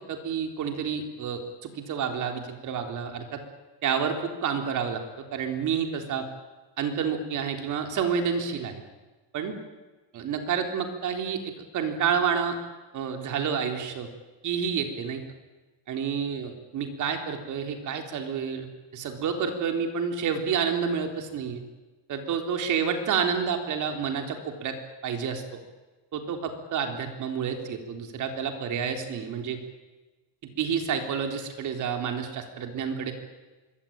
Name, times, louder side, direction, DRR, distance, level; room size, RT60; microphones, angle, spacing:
voice 1, 0.1-3.4 3.8-5.0 5.3-6.3 6.8-8.7 9.3-9.6 10.1-12.6 12.9-14.1 14.4-15.2 15.9-18.7 18.9-21.6 22.1-24.8 25.0-25.4 26.1-29.6 30.6-33.1, right 7 dB, 45° right, 5 dB, 3.9 m, -29 dB
25.5 x 22.5 x 9.0 m, 1.2 s
cardioid pair, 165°, 43 cm